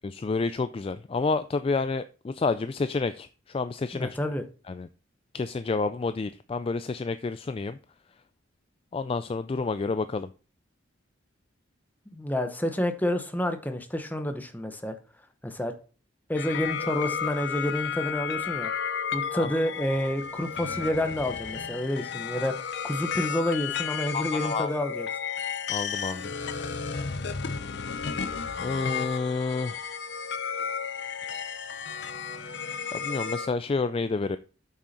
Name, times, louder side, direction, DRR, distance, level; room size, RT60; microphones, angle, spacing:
voice 1, 0.0-4.2 4.7-4.9 5.3-7.8 8.9-10.3 19.3-19.5 24.1-24.7 25.7-26.3 28.6-29.9 32.9-34.4, left 4 dB, 30° left, 0.3 m, -29 dB
voice 2, 3.9-4.4 12.1-15.0 15.4-15.7 16.3-18.7 19.1-25.1, left 1 dB, 10° left, 0.9 m, -29 dB
sound 1, 16.3-33.5, left 6 dB, 60° left, 0.7 m, -33 dB
8.3 x 6.2 x 4.2 m
head